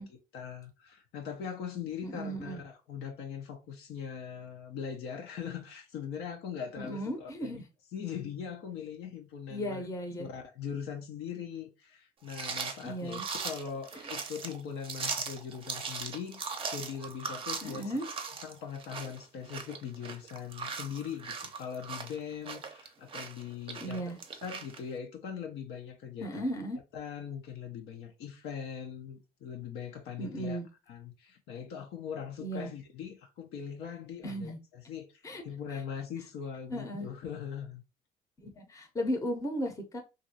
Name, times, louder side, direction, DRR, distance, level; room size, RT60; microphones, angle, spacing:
voice 1, 0.0-7.6 7.9-9.8 10.2-18.1 18.4-24.0 24.3-26.4 26.9-30.6 30.9-37.8, left 7 dB, 80° left, 0.7 m, -41 dB
voice 2, 2.0-2.6 6.8-7.6 9.5-10.3 12.8-13.2 17.6-18.0 23.8-24.2 26.2-26.8 30.2-30.6 32.4-32.7 34.2-34.6 35.2-35.4 36.7-37.1 38.4-40.0, equal, 20° left, 0.7 m, -35 dB
sound 1, 12.3-24.8, right 5 dB, 30° right, 0.6 m, -39 dB
2.9 x 2.6 x 2.7 m
cardioid pair, 110°, 17 cm